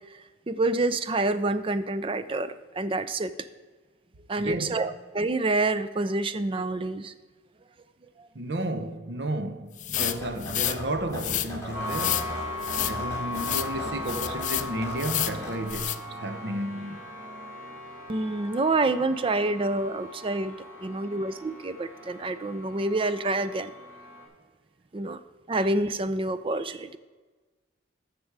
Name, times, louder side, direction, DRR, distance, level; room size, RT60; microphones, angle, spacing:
voice 1, 0.5-3.3 4.3-7.1 8.2-8.3 18.1-23.7 24.9-25.2 25.5-27.0, right 2 dB, 30° right, 0.4 m, -27 dB
voice 2, 4.4-5.0 8.3-12.5 12.8-17.0, right 1 dB, 65° right, 0.8 m, -33 dB
sound 1, 9.8-10.8 11.1-11.5 11.9-12.3 12.6-13.0 13.3-13.7 14.1-14.7 15.0-15.4 15.7-16.0, left 14 dB, 45° left, 0.4 m, -29 dB
sound 2, 10.0-15.8, equal, 15° left, 2.1 m, -38 dB
sound 3, 11.7-24.2, left 2 dB, 10° right, 2.8 m, -38 dB
13.5 x 6.1 x 4.7 m
head